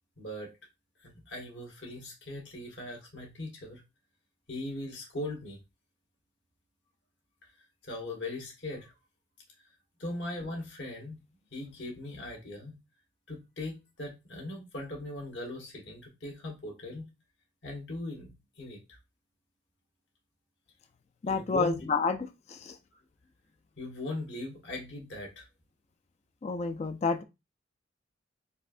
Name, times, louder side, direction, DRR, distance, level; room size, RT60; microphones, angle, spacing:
voice 1, 0.2-0.5 1.0-3.8 4.5-5.6 7.4-7.5 7.8-8.9 10.0-11.2 11.5-12.8 13.3-17.1 17.6-18.8 21.2-21.8 23.8-25.5, left 2 dB, 65° left, 1.4 m, -39 dB
voice 2, 21.2-22.8 26.4-27.2, left 4 dB, 35° left, 0.3 m, -30 dB
4.2 x 2.6 x 2.4 m
head